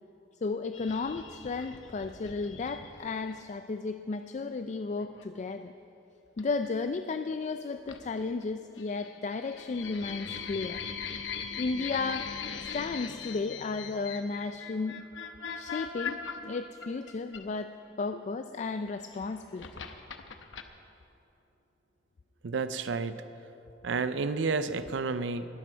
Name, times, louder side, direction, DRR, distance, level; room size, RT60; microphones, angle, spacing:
voice 1, 0.4-5.7 6.4-10.8 11.6-12.3 12.7-15.0 15.6-17.7 18.0-19.8, left 4 dB, 40° left, 9 dB, 0.4 m, -34 dB
sound 1, 0.7-3.4 5.0-5.2 6.4-6.7 7.9-8.4 8.8-17.9 18.9-20.6, left 6 dB, 75° left, 0.9 m, -40 dB
voice 2, 22.4-23.2 23.8-25.5, right 4 dB, 70° right, 12 dB, 0.5 m, -30 dB
20.0 x 12.5 x 4.6 m, 2.9 s
head